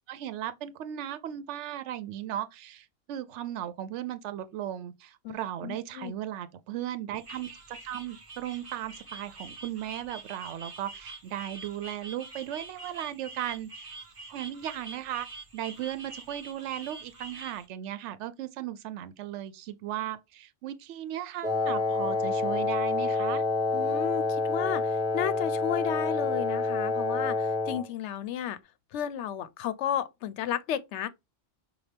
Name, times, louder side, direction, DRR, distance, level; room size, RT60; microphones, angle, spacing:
voice 1, 0.1-13.9 14.3-15.3 15.5-23.4, right 12 dB, 75° right, 0.9 m, -36 dB
voice 2, 5.6-6.1 23.7-28.6 28.9-31.1, left 10 dB, 75° left, 0.8 m, -33 dB
sound 1, 7.1-17.7, right 3 dB, 30° right, 0.9 m, -45 dB
Wind instrument woodwind instrument, 21.4-27.9, left 3 dB, 5° right, 0.6 m, -28 dB
5.6 x 2.3 x 3.3 m
omnidirectional pair, 1.2 m